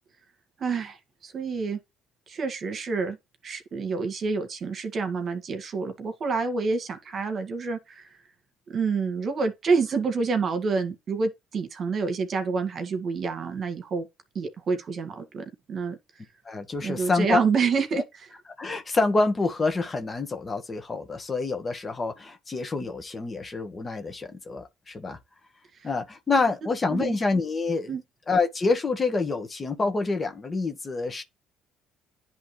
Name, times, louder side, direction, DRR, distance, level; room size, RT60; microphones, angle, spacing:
voice 1, 0.6-1.0 1.2-1.8 2.3-3.2 3.4-8.2 8.7-14.1 14.4-16.0 16.8-18.0 26.9-27.2 27.9-28.0, right 4 dB, 50° right, 1.9 m, -28 dB
voice 2, 16.4-17.4 17.9-18.0 18.6-25.2 25.8-28.0 28.3-31.2, left 3 dB, 30° left, 1.6 m, -27 dB
10.5 x 3.5 x 3.2 m
supercardioid pair, 85°, 0 cm